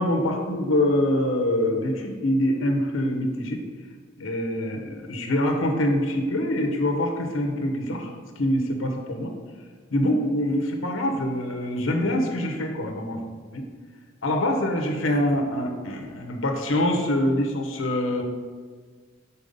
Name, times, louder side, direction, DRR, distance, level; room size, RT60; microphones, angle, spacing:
voice 1, 0.0-3.6 4.2-8.1 8.4-9.3 9.9-13.2 13.5-13.6 14.2-18.2, left 1 dB, 85° left, 3 dB, 0.9 m, -24 dB
5.4 x 4.4 x 5.2 m, 1.5 s
head